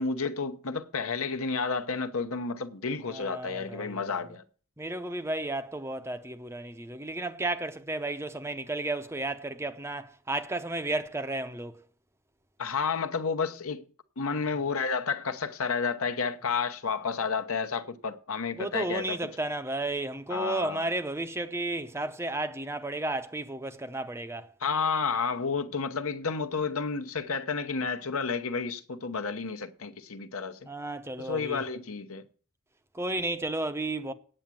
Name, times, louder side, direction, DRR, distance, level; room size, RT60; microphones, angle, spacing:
voice 1, 0.0-4.4 12.6-13.8 14.2-19.2 20.3-20.9 24.6-30.6 31.2-32.2, left 5 dB, 70° left, 1.0 m, -31 dB
voice 2, 3.1-4.0 4.8-11.8 14.3-14.4 18.6-24.5 30.7-31.6 32.9-34.1, right 2 dB, 10° right, 0.6 m, -33 dB
8.9 x 8.2 x 7.5 m
head